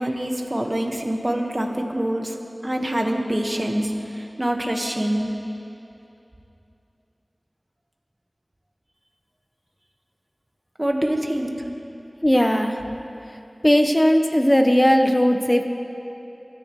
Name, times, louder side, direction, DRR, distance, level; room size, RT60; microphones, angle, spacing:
voice 1, 0.0-2.4 2.6-5.3 10.8-11.5, right 1 dB, 30° right, 2 dB, 1.6 m, -25 dB
voice 2, 12.2-12.8 13.6-15.6, equal, 20° left, 5 dB, 1.1 m, -17 dB
25.0 x 14.0 x 3.3 m, 2.9 s
wide cardioid pair, 45°, 0 cm